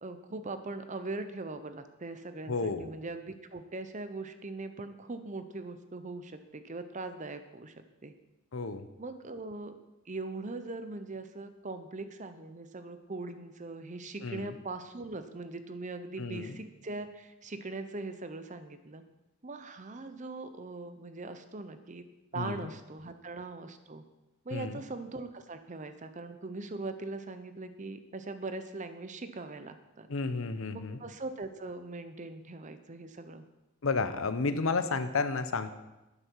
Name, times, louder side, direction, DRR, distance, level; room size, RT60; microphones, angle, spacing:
voice 1, 0.0-7.7 8.0-8.1 9.0-9.8 10.1-19.0 19.4-22.0 22.3-24.0 24.4-30.1 30.7-33.4, right 3 dB, 35° right, 10 dB, 0.8 m, -41 dB
voice 2, 2.5-2.9 8.5-8.9 14.2-14.5 16.2-16.6 22.4-22.7 24.5-24.8 30.1-31.0 33.8-35.7, left 4 dB, 70° left, 11 dB, 0.8 m, -32 dB
12.5 x 9.8 x 4.6 m, 0.98 s
head